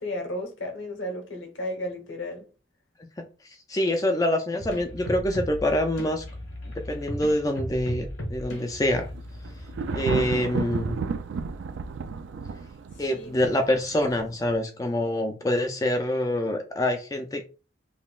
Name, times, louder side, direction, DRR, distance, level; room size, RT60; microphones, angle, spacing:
voice 1, 0.0-2.5 13.1-13.5, left 1 dB, 75° left, 1.0 m, -34 dB
voice 2, 3.7-6.2 6.9-9.1 9.9-11.0 13.0-17.4, left 1 dB, 20° left, 0.3 m, -26 dB
sound 1, 4.6-10.3, equal, 90° left, 1.4 m, -37 dB
Thunder, 9.1-14.6, right 5 dB, 70° right, 0.3 m, -32 dB
5.4 x 2.2 x 2.3 m
head